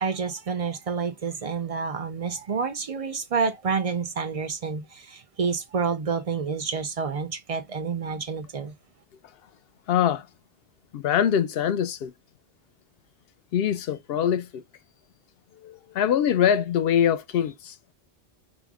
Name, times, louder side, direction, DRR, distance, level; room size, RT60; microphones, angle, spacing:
voice 1, 0.0-8.7, right 5 dB, 50° right, 0.4 m, -29 dB
voice 2, 9.9-10.3 10.9-12.1 13.5-14.6 15.6-17.7, left 9 dB, 70° left, 0.8 m, -23 dB
5.0 x 2.1 x 3.5 m
omnidirectional pair, 1.1 m